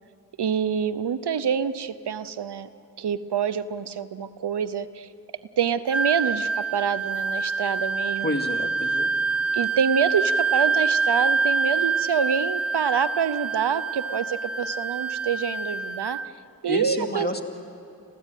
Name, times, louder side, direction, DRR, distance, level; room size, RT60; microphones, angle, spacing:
voice 1, 0.4-2.7 3.0-5.1 5.6-8.4 9.5-16.2 16.6-17.4, right 7 dB, 85° right, 15 dB, 0.8 m, -26 dB
Wind instrument woodwind instrument, 5.9-16.3, right 4 dB, 40° right, 0.9 m, -26 dB
voice 2, 8.2-9.1 16.6-17.4, left 1 dB, 25° left, 3 dB, 2.4 m, -29 dB
27.5 x 15.5 x 9.1 m, 2.6 s
cardioid pair, 40°, 39 cm